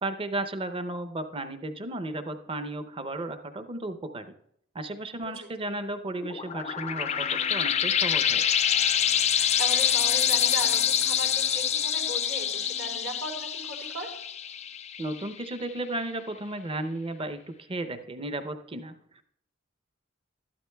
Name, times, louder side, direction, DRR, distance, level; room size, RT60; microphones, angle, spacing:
voice 1, 0.0-4.3 4.7-8.4 15.0-19.2, right 2 dB, 30° right, 9 dB, 0.6 m, -34 dB
voice 2, 5.2-5.9 9.3-14.1, right 1 dB, 90° right, -1 dB, 3.6 m, -38 dB
sound 1, 6.2-15.4, left 9 dB, 35° left, 0.3 m, -26 dB
13.0 x 11.5 x 2.3 m, 0.72 s
head